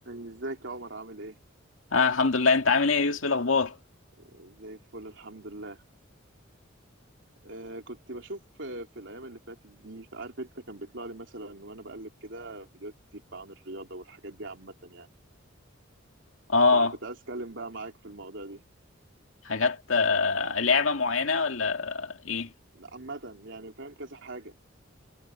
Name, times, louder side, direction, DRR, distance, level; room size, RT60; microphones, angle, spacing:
voice 1, 0.1-1.4 4.2-5.8 7.4-15.1 16.7-18.6 22.7-24.5, right 2 dB, 65° right, 3.4 m, -41 dB
voice 2, 1.9-3.8 16.5-16.9 19.5-22.5, left 4 dB, 80° left, 2.1 m, -24 dB
head